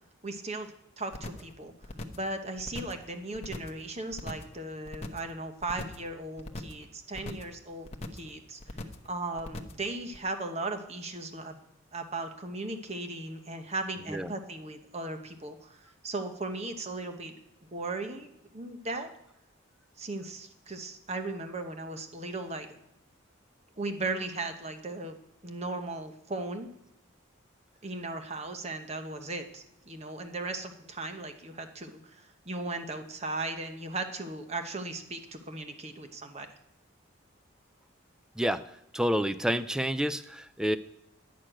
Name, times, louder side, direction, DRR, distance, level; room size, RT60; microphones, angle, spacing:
voice 1, 0.2-1.7 2.1-8.6 9.0-11.6 11.9-17.4 17.7-18.3 18.5-19.1 20.0-22.7 23.8-25.2 25.4-26.7 27.8-36.5, right 2 dB, 30° right, 6 dB, 1.0 m, -37 dB
sound 1, 1.1-1.5 1.8-2.3 2.6-3.0 3.3-3.8 4.1-4.6 4.9-5.3 5.6-6.1 6.4-6.8 7.1-7.5 7.8-8.3 8.6-9.1 9.4-9.8 10.1-10.2, left 1 dB, 30° left, 0.9 m, -40 dB
voice 2, 38.9-40.8, equal, 5° right, 12 dB, 0.3 m, -28 dB
10.5 x 6.4 x 9.1 m, 0.82 s
head